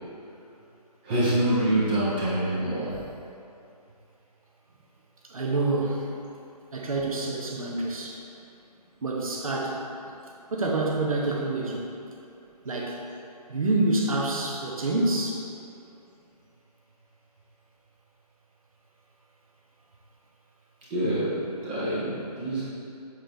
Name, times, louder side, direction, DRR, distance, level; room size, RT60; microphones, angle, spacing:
voice 1, 1.0-3.0 20.9-22.6, right 1 dB, 15° right, -8 dB, 0.7 m, -26 dB
voice 2, 5.3-6.1 6.7-8.2 9.0-9.8 10.5-11.9 12.6-13.0 13.5-15.4, right 2 dB, 60° right, -2 dB, 1.1 m, -27 dB
7.5 x 4.4 x 3.4 m, 2.8 s
figure-of-eight pair, 150°, 21 cm